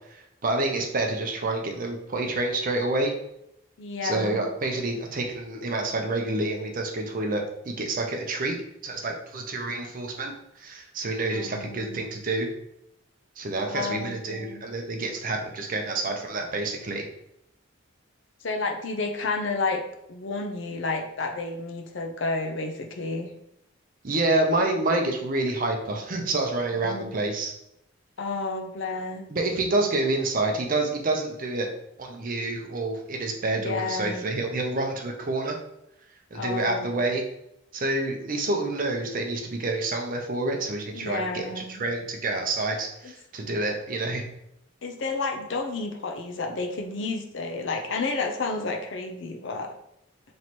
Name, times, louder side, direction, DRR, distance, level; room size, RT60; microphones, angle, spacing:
voice 1, 0.0-3.1 4.0-12.5 13.4-17.1 24.0-27.5 29.3-31.7 32.0-35.6 36.3-37.2 37.7-44.2, right 2 dB, 40° right, 3 dB, 0.5 m, -28 dB
voice 2, 3.8-4.4 11.3-12.1 13.7-14.6 18.4-19.8 20.1-23.3 26.7-27.1 28.2-29.3 33.5-34.3 36.3-36.9 40.9-41.8 43.0-43.1 44.8-49.7, left 3 dB, 60° left, 4 dB, 0.5 m, -31 dB
3.1 x 2.9 x 4.2 m, 0.81 s
head